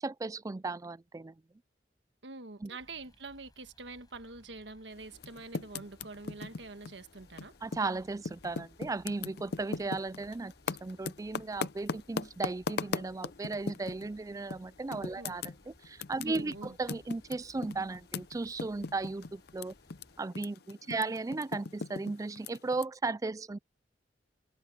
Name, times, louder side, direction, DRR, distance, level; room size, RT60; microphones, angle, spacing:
voice 1, 0.0-1.3 2.6-2.7 7.6-10.5 10.8-19.7 20.2-23.6, right 3 dB, 20° right, 0.3 m, -36 dB
voice 2, 2.2-7.5 15.2-15.4 16.3-16.8 20.9-21.1, right 3 dB, 85° right, 1.5 m, -46 dB
sound 1, 2.8-20.2, equal, 25° left, 5.2 m, -63 dB
Typing, 5.1-7.9 8.2-14.1 14.5-14.6 14.9-20.0 20.3-22.8, left 4 dB, 65° left, 0.6 m, -38 dB
head